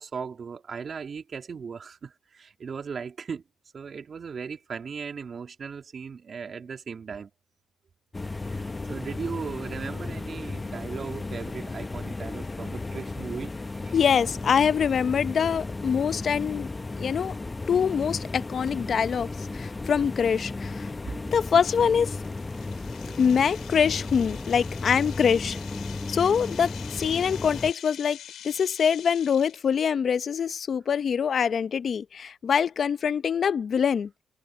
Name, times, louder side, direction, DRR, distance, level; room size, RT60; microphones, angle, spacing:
voice 1, 0.0-3.4 3.7-7.3 8.3-14.0 23.1-23.2, right 6 dB, 45° right, 2.7 m, -38 dB
sound 1, 8.1-27.7, left 3 dB, 20° left, 0.8 m, -35 dB
voice 2, 13.9-16.7 17.0-17.3 17.7-20.9 21.3-22.2 23.2-25.6 26.1-28.2 28.4-34.1, left 7 dB, 50° left, 0.8 m, -24 dB
sound 2, 19.5-19.6 20.1-20.3 20.8-20.9 21.4-29.7, left 10 dB, 70° left, 4.7 m, -46 dB
cardioid pair, 80°, 0 cm